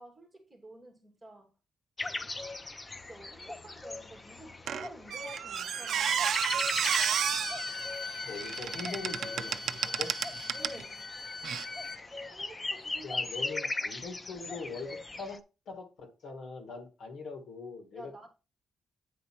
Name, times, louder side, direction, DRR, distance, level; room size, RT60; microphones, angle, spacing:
voice 1, 0.0-1.5 3.1-6.4 10.5-11.1 12.3-13.1 17.9-18.3, right 2 dB, 10° right, 2.6 m, -51 dB
sound 1, 2.0-15.4, left 2 dB, 20° left, 0.5 m, -39 dB
Squeak, 4.7-10.8 11.4-11.6, right 8 dB, 70° right, 0.5 m, -32 dB
Bowed string instrument, 6.8-12.0, left 4 dB, 50° left, 0.8 m, -41 dB
voice 2, 8.2-10.1 13.0-18.3, left 4 dB, 70° left, 1.5 m, -42 dB
9.3 x 4.2 x 4.4 m
wide cardioid pair, 150°, 0 cm